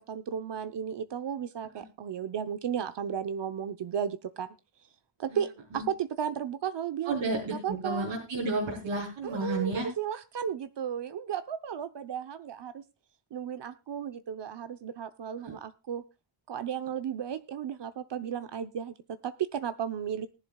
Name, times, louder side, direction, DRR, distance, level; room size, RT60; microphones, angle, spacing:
voice 1, 0.0-4.5 5.2-7.2 7.6-8.1 9.2-12.8 13.3-16.0 16.5-18.9 19.2-20.3, right 8 dB, 60° right, 11 dB, 0.9 m, -34 dB
voice 2, 7.1-9.9 15.4-15.5, right 3 dB, 85° right, -4 dB, 4.1 m, -32 dB
19.5 x 11.0 x 2.3 m, 0.27 s
wide cardioid pair, 170°, 49 cm